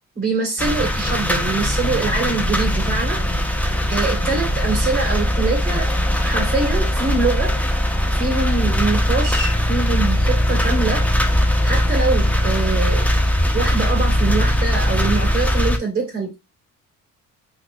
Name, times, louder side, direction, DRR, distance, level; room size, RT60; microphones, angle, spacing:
voice 1, 0.2-3.2 3.9-5.9 6.2-7.5 8.1-11.1 11.6-13.1 13.5-16.4, right 3 dB, 30° right, 2.0 m, -24 dB
sound 1, 0.6-15.8, equal, 5° left, 0.6 m, -20 dB
4.0 x 2.3 x 2.7 m
cardioid pair, 90°, 30 cm